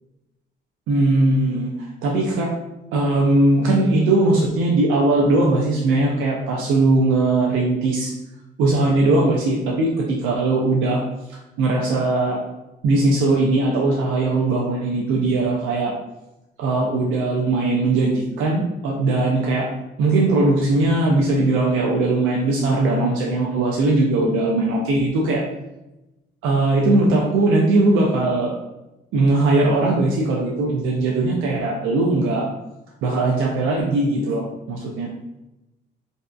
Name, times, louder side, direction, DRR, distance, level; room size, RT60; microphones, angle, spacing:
voice 1, 0.9-1.7 2.0-2.5 2.9-8.1 8.6-11.0 11.6-12.4 12.8-15.9 16.6-19.7 20.0-25.4 26.4-28.5 29.1-32.5 33.0-35.1, right 2 dB, 85° right, -2 dB, 0.4 m, -19 dB
2.6 x 2.2 x 2.3 m, 0.95 s
cardioid pair, 90°, 20 cm